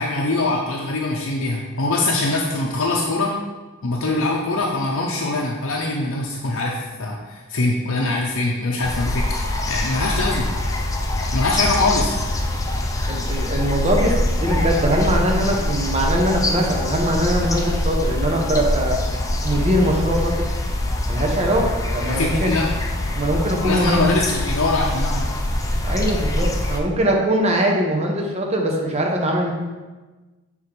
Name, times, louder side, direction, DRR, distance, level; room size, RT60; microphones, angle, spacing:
voice 1, 0.0-3.3 3.8-10.5 11.3-12.2 22.1-22.7 23.6-25.3, left 2 dB, 65° left, -2 dB, 0.7 m, -23 dB
sound 1, 8.8-26.8, left 1 dB, 15° left, 0.5 m, -24 dB
voice 2, 13.1-19.0 19.4-20.4 21.1-21.6 21.9-22.6 23.1-24.0 25.8-29.5, right 1 dB, 30° right, 0 dB, 0.9 m, -21 dB
6.6 x 3.7 x 4.5 m, 1.2 s
head